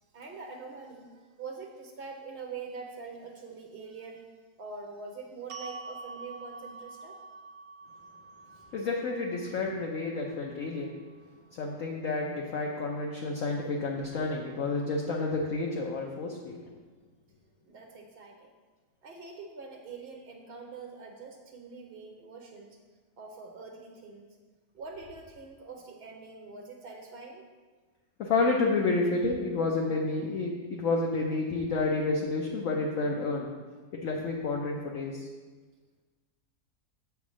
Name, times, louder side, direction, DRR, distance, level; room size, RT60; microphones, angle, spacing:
voice 1, 0.1-4.2 4.6-7.2 8.5-8.7 17.7-18.5 19.0-22.8 23.2-24.3 24.7-27.5, right 4 dB, 55° right, 2 dB, 0.6 m, -44 dB
sound 1, 5.5-11.7, right 4 dB, 90° right, 1.2 m, -47 dB
voice 2, 8.7-10.9 11.5-16.6 28.2-33.5 33.9-35.3, left 3 dB, 60° left, -1 dB, 1.0 m, -30 dB
7.4 x 3.5 x 6.1 m, 1.4 s
omnidirectional pair, 1.8 m